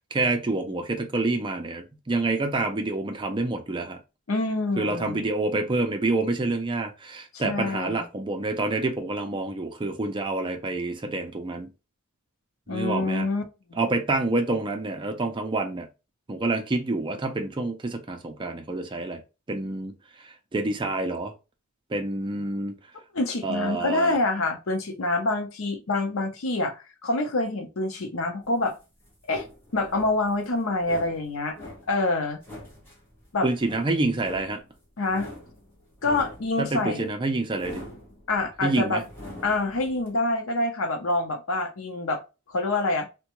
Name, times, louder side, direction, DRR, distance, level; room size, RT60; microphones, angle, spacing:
voice 1, 0.0-4.0 4.8-11.7 12.7-13.3 13.7-15.9 16.3-19.2 19.5-19.9 20.2-21.3 21.9-22.7 23.4-24.2 33.4-34.6 36.6-37.9 38.6-39.0, right 2 dB, 20° right, 0.4 m, -27 dB
voice 2, 4.3-5.3 7.4-8.1 12.7-13.4 13.7-13.8 23.1-28.8 29.3-29.5 29.7-31.6 31.9-32.4 33.3-33.5 35.0-35.3 36.0-37.1 38.3-39.0 39.4-42.2 42.5-43.1, left 2 dB, 65° left, 0.7 m, -26 dB
torch rapid movements, 28.4-40.1, left 1 dB, 10° left, 1.0 m, -45 dB
3.4 x 2.2 x 2.9 m
head